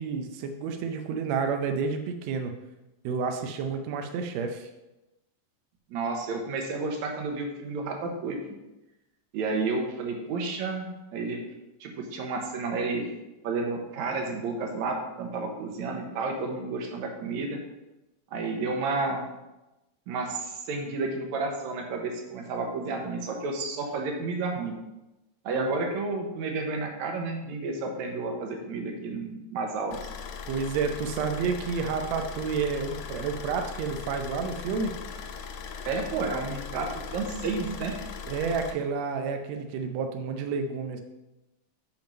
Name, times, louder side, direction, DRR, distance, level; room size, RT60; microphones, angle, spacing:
voice 1, 0.0-2.5 3.0-4.7 25.5-25.7 30.5-34.9 38.3-41.0, right 5 dB, 85° right, 5 dB, 1.5 m, -30 dB
voice 2, 5.9-8.4 9.3-11.4 11.8-13.1 13.4-17.6 18.3-19.2 20.1-24.7 25.4-30.0 35.9-37.9, right 3 dB, 65° right, 2 dB, 2.1 m, -31 dB
Car / Idling, 29.9-38.7, left 6 dB, 85° left, 2.5 m, -39 dB
7.1 x 5.2 x 5.2 m, 0.99 s
omnidirectional pair, 3.9 m